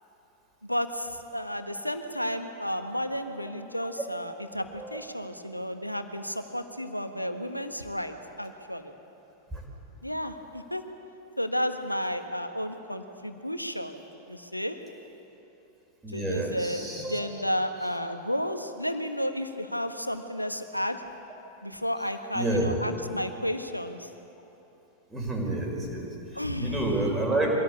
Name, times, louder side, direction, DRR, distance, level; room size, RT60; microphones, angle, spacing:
voice 1, 0.7-8.9 10.0-10.8 11.4-13.9 14.3-14.8 16.1-21.0 21.6-24.1 26.3-26.9, equal, 90° left, 7 dB, 1.3 m, -32 dB
voice 2, 16.0-17.3 22.3-22.8 25.1-26.1 26.6-27.5, right 2 dB, 15° right, -1 dB, 5.5 m, -29 dB
24.0 x 16.5 x 8.3 m, 2.9 s
figure-of-eight pair, 90°, 0 cm